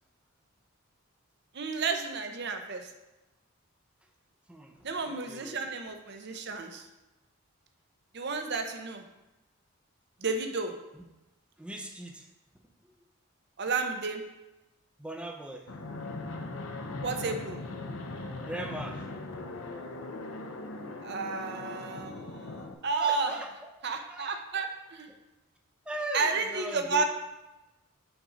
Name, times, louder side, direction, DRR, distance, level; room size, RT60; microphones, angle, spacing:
voice 1, 1.5-2.9 4.8-6.9 8.1-9.0 10.2-10.7 13.6-14.2 17.0-17.6 21.0-23.4 23.8-25.1 26.1-27.0, right 4 dB, 50° right, 5 dB, 0.7 m, -32 dB
voice 2, 5.1-5.6 11.6-12.3 15.0-15.7 18.4-19.1 23.0-23.5 24.1-24.4 25.9-27.0, right 1 dB, 5° right, 3 dB, 0.5 m, -39 dB
Fixed-wing aircraft airplane, 15.7-22.7, left 2 dB, 70° left, 0.7 m, -39 dB
8.0 x 4.0 x 5.0 m, 1.0 s
head